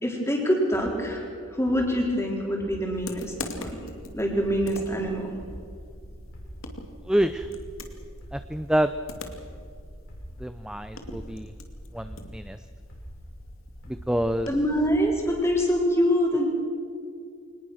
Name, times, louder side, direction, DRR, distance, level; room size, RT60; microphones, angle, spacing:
voice 1, 0.0-3.8 4.1-5.3 14.5-16.5, equal, 15° left, 0 dB, 4.1 m, -25 dB
sound 1, 0.7-4.1 4.5-6.9 7.3-11.6 12.0-14.4 14.8-15.5, equal, 70° left, 6.7 m, -45 dB
sound 2, 2.9-15.8, left 1 dB, 90° left, 2.4 m, -43 dB
voice 2, 7.1-7.5 8.3-8.9 10.4-11.5 11.9-12.6 13.9-14.5, right 1 dB, 5° right, 10 dB, 0.5 m, -27 dB
24.0 x 19.5 x 6.4 m, 2.3 s
head